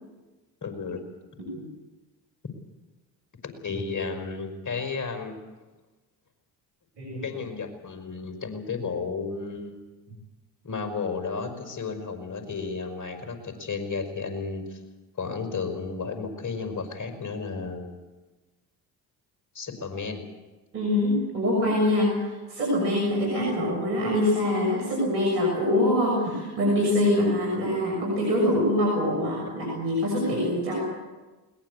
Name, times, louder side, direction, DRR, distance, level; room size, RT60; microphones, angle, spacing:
voice 1, 0.6-1.0 3.4-5.4 7.2-9.8 10.6-14.8 15.2-18.0 19.5-20.2, left 4 dB, 40° left, 7 dB, 5.4 m, -33 dB
voice 2, 20.7-30.9, left 1 dB, 90° right, -2 dB, 6.7 m, -24 dB
21.5 x 19.0 x 8.4 m, 1.2 s
hypercardioid pair, 55°, 49 cm